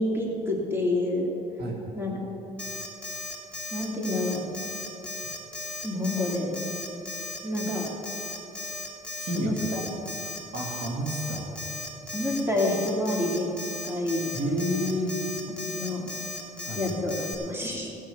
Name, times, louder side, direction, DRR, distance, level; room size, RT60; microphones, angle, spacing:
voice 1, 0.0-1.3 1.9-2.1 3.7-4.5 5.8-6.5 7.4-7.9 9.3-9.8 12.1-13.5 13.8-14.3 15.6-16.1 16.8-17.9, left 1 dB, 15° right, -2 dB, 2.7 m, -28 dB
Alarm, 2.6-17.3, left 2 dB, 5° left, 2.1 m, -36 dB
voice 2, 9.2-9.6 10.1-10.2 10.5-11.5 14.3-15.1 16.6-16.9, equal, 65° right, -1 dB, 2.2 m, -30 dB
17.0 x 6.5 x 6.9 m, 2.9 s
cardioid pair, 110°, 17 cm